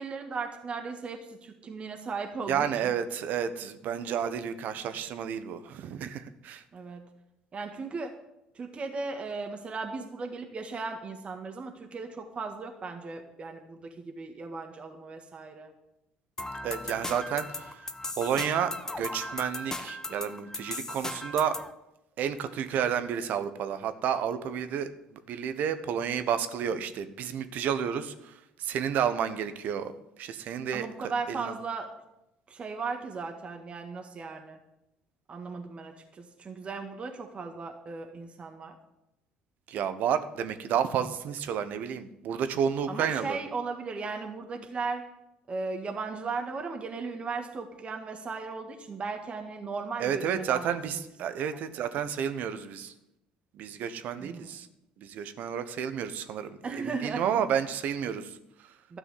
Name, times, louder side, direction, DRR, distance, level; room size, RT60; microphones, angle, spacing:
voice 1, 0.0-2.9 6.7-7.0 7.5-8.1 8.5-15.7 30.7-31.9 32.5-34.6 35.3-38.7 42.9-45.0 45.5-50.8 51.7-51.8 54.2-54.6 56.6-57.3 58.9-59.0, right 4 dB, 40° right, 4 dB, 1.7 m, -37 dB
voice 2, 2.5-6.6 16.6-17.9 18.2-21.6 22.2-29.9 30.2-31.5 39.7-43.4 50.0-52.9 53.5-54.7 55.0-58.7, right 8 dB, 60° right, 11 dB, 1.1 m, -31 dB
sound 1, 16.4-21.7, left 2 dB, 20° left, 1.2 m, -37 dB
12.5 x 6.2 x 9.5 m, 0.88 s
hypercardioid pair, 70°, 3 cm